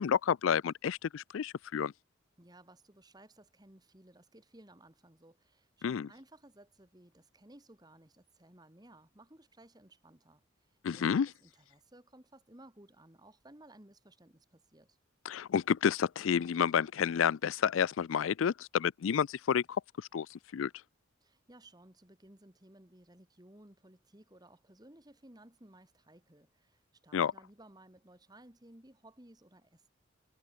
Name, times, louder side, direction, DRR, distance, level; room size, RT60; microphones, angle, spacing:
voice 1, 0.0-1.9 5.8-6.1 10.8-11.3 15.3-19.6 20.1-20.3 20.5-20.7 27.1-27.3, left 7 dB, 85° left, 0.4 m, -30 dB
voice 2, 2.4-10.4 10.9-15.0 21.2-29.9, right 1 dB, 20° right, 2.0 m, -58 dB
head